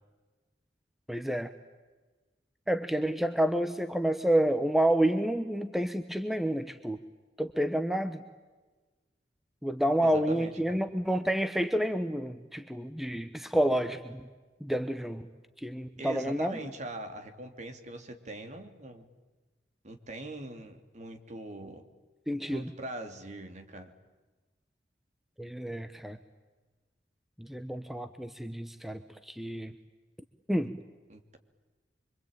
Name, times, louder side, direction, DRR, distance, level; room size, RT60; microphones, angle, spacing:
voice 1, 1.1-1.5 2.7-7.0 7.4-8.2 9.6-14.2 14.6-15.3 15.6-16.6 22.3-22.7 25.4-26.2 27.4-29.7 30.5-30.7, right 1 dB, ahead, 9 dB, 1.0 m, -29 dB
voice 2, 10.0-10.8 16.0-19.0 19.8-21.8 22.4-23.9 31.1-31.4, right 2 dB, 40° right, 6 dB, 2.9 m, -42 dB
25.5 x 25.0 x 9.0 m, 1.3 s
head